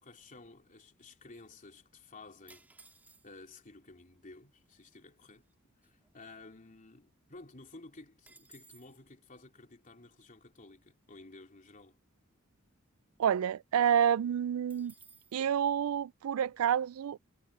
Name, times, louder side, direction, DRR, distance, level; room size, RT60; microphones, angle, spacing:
voice 1, 0.0-2.7 3.2-5.4 5.8-12.0, left 3 dB, 40° left, 3.5 m, -53 dB
sound 1, 2.5-3.6 4.4-4.5 4.6-5.0 5.4-6.9 7.2-7.3 7.6-9.0 14.7-15.4, right 3 dB, 10° right, 2.8 m, -59 dB
voice 2, 13.2-14.9 15.3-17.2, right 9 dB, 85° right, 0.3 m, -28 dB
head